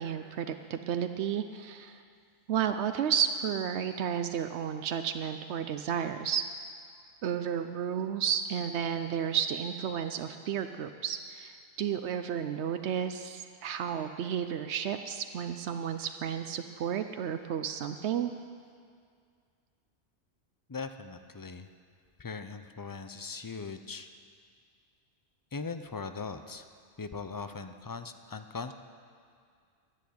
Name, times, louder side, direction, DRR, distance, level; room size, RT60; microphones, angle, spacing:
voice 1, 0.0-2.0 2.5-6.5 7.2-18.3, right 8 dB, 85° right, 8 dB, 0.9 m, -32 dB
voice 2, 20.7-21.7 22.2-24.1 25.5-26.7 27.0-28.7, left 4 dB, 30° left, 9 dB, 0.4 m, -40 dB
11.5 x 10.5 x 9.4 m, 2.2 s
omnidirectional pair, 1.1 m